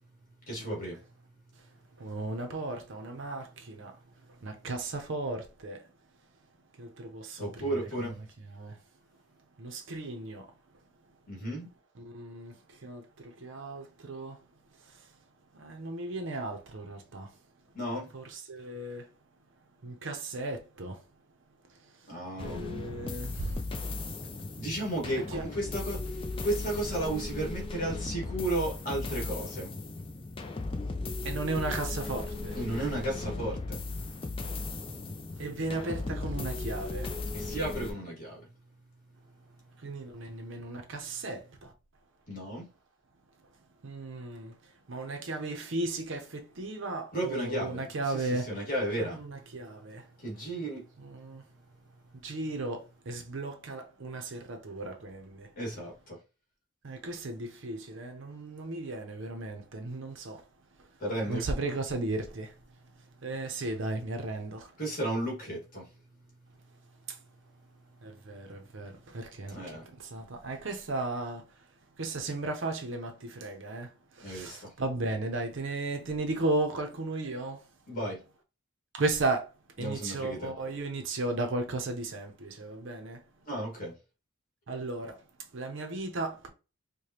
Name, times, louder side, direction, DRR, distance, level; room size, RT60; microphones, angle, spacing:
voice 1, 0.4-1.0 4.0-4.4 7.4-8.2 11.3-11.7 17.7-18.1 22.1-22.6 24.6-29.8 30.8-31.3 32.5-34.6 35.0-35.4 37.3-39.2 39.5-39.8 40.4-40.5 42.3-42.7 47.1-49.4 49.8-49.9 50.2-51.6 52.1-52.2 55.5-56.2 61.0-61.4 64.8-66.7 67.9-68.7 69.5-69.8 74.2-74.7 77.9-78.2 79.8-80.5 83.5-83.9, right 1 dB, 40° left, 1.7 m, -35 dB
voice 2, 2.0-4.0 4.3-5.9 6.8-8.8 9.6-10.8 12.0-14.4 14.8-15.2 15.5-17.4 18.1-19.1 19.8-21.0 21.7-22.1 22.4-23.6 25.0-25.5 31.2-32.6 35.4-37.2 39.8-41.7 43.8-48.5 49.0-50.1 51.0-51.5 52.1-55.5 56.8-60.5 60.8-61.0 61.3-62.5 63.2-64.8 67.1-67.2 68.0-71.7 72.0-77.7 78.9-79.5 79.8-83.2 84.7-86.5, right 2 dB, 55° right, 0.6 m, -36 dB
sound 1, 22.4-37.9, left 3 dB, 25° left, 0.4 m, -37 dB
4.9 x 2.2 x 2.8 m
head